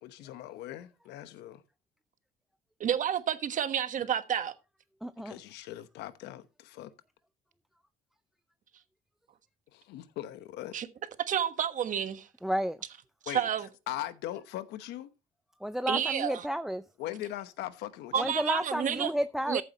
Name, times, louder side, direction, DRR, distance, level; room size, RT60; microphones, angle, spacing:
voice 1, 0.0-1.6 5.2-6.9 9.7-10.7 13.3-13.5 13.9-15.1 17.0-18.3, left 13 dB, 85° left, 1.1 m, -40 dB
voice 2, 2.8-4.5 10.7-10.9 11.3-12.2 13.2-13.7 15.9-16.4 18.1-19.1 19.5-19.6, right 9 dB, 50° right, 1.3 m, -30 dB
voice 3, 5.0-5.4 12.4-12.8 15.6-16.9 18.2-19.6, equal, ahead, 0.4 m, -31 dB
14.5 x 8.0 x 3.0 m
cardioid pair, 110°, 17 cm